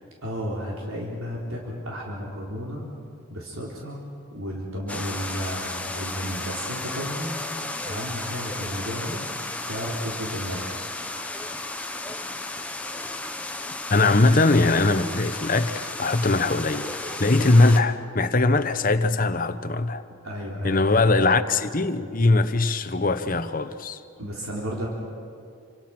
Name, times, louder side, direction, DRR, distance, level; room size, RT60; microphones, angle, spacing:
voice 1, 0.2-2.9 3.3-4.0 4.3-7.4 7.9-9.2 9.7-10.8 20.2-20.9 24.2-24.9, equal, 75° right, 3.9 m, -33 dB
sound 1, 4.9-17.8, left 2 dB, 5° left, 0.9 m, -34 dB
voice 2, 13.9-20.0 20.6-24.0, left 2 dB, 40° left, 0.9 m, -21 dB
28.0 x 26.0 x 6.1 m
head